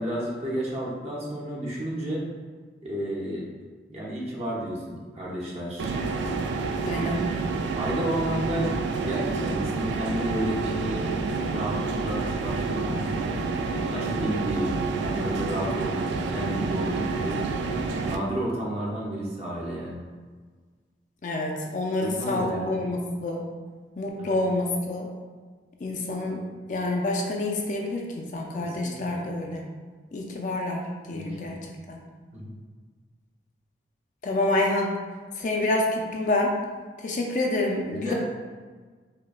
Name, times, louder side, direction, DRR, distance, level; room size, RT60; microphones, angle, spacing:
voice 1, 0.0-2.2 2.8-3.5 3.9-5.9 7.7-11.1 11.5-13.4 13.9-17.4 18.0-20.0 22.0-22.8 24.2-24.4 28.6-29.2 31.1-31.5 32.3-32.5 37.9-38.1, right 1 dB, 35° right, -4 dB, 0.7 m, -32 dB
sound 1, 5.8-18.2, right 4 dB, 80° right, 0.3 m, -28 dB
voice 2, 6.9-7.2 21.2-23.4 24.0-25.1 25.8-26.4 26.7-29.7 30.1-30.8 31.1-31.6 31.9-32.0 34.2-34.9 35.4-36.5 37.0-38.1, left 2 dB, 45° left, 0 dB, 0.4 m, -27 dB
5.0 x 2.2 x 2.4 m, 1.5 s
head